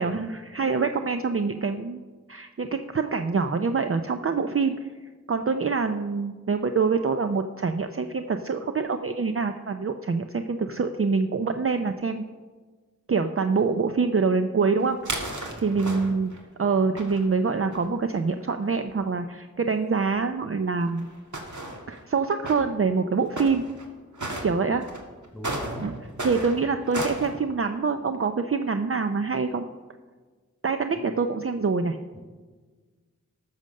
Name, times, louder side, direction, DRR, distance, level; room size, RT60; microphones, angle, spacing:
voice 1, 0.0-2.0 2.3-4.8 5.3-12.2 13.1-15.0 15.3-21.1 21.9-23.6 24.4-24.8 25.8-25.9 26.2-29.7 30.6-32.0, right 4 dB, 45° right, 7 dB, 0.5 m, -25 dB
sound 1, 14.7-16.4 17.0-17.9 18.6-18.7 18.9-19.0 20.0-20.1 20.8-22.0 22.4-22.6 23.4-23.8 24.1-24.4 24.8-27.3, right 2 dB, 70° right, 1.8 m, -34 dB
voice 2, 15.5-16.1 25.3-25.9 30.9-31.0 32.1-32.2, equal, 5° right, 0 dB, 3.4 m, -39 dB
13.5 x 6.5 x 6.5 m, 1.4 s
wide cardioid pair, 55°, 31 cm